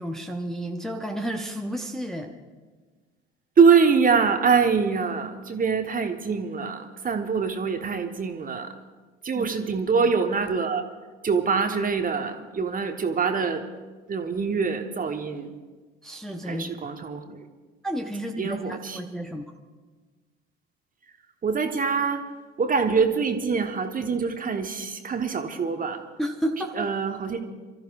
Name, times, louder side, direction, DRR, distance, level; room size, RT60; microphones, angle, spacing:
voice 1, 0.0-2.3 9.3-9.5 16.0-16.9 17.8-19.4 26.2-26.9, equal, ahead, 2 dB, 1.0 m, -31 dB
voice 2, 3.6-8.7 9.2-10.8 11.2-13.6 14.1-15.5 16.4-17.4 18.4-19.0 21.4-22.2 22.6-26.0 26.7-27.5, right 5 dB, 25° right, 6 dB, 1.2 m, -24 dB
29.0 x 14.0 x 2.5 m, 1.4 s
figure-of-eight pair, 60°, 32 cm